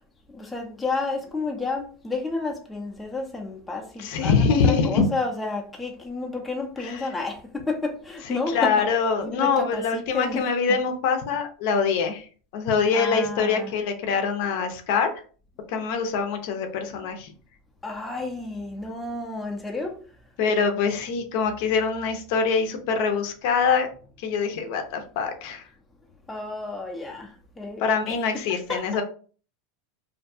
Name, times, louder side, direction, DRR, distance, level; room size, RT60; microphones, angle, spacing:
voice 1, 0.3-8.9 9.2-10.4 12.9-13.7 17.8-20.0 26.3-27.3 27.6-28.2 28.5-29.0, left 3 dB, 5° left, 0.5 m, -31 dB
voice 2, 4.0-5.1 6.8-7.0 8.3-12.3 12.5-15.1 15.7-17.3 20.4-23.9 24.2-25.6 27.8-29.0, left 5 dB, 60° left, 0.5 m, -24 dB
2.5 x 2.2 x 2.6 m
supercardioid pair, 150°, 0 cm